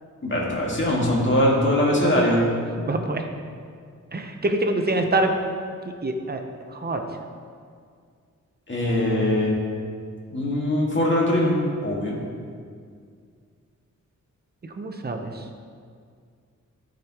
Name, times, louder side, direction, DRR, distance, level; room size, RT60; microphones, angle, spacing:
voice 1, 0.2-2.4 8.7-9.5 10.3-11.6 11.8-12.2, left 1 dB, 40° left, -4 dB, 1.9 m, -21 dB
voice 2, 2.9-3.2 4.1-5.3 6.0-6.4 6.7-7.0 14.8-15.3, right 2 dB, 30° right, 4 dB, 0.8 m, -25 dB
13.5 x 5.1 x 3.0 m, 2.1 s
wide cardioid pair, 110°, 31 cm